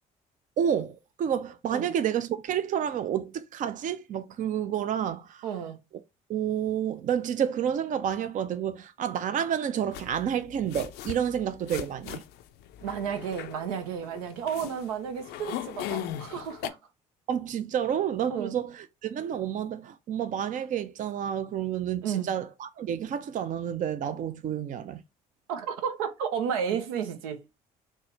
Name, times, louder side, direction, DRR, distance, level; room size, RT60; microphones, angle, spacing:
voice 1, 0.6-5.4 6.3-12.2 17.3-25.0, right 9 dB, 45° right, 0.5 m, -30 dB
voice 2, 5.4-5.8 12.8-16.8 18.3-18.5 22.0-22.3 25.5-27.4, right 8 dB, 90° right, 0.7 m, -32 dB
sound 1, 9.9-16.7, left 12 dB, 70° left, 0.4 m, -39 dB
4.3 x 2.0 x 3.3 m
hypercardioid pair, 65°, 18 cm